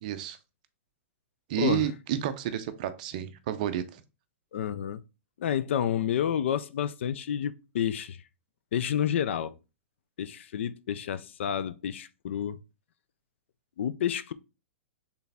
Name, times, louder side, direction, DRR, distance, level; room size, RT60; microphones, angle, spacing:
voice 1, 0.0-0.4 1.5-4.0, right 11 dB, 35° right, 0.5 m, -30 dB
voice 2, 1.5-1.9 4.5-5.0 5.4-8.2 8.7-9.6 10.2-12.6 13.8-14.3, left 9 dB, 60° left, 0.4 m, -30 dB
4.6 x 3.4 x 3.4 m
hypercardioid pair, 170°, 7 cm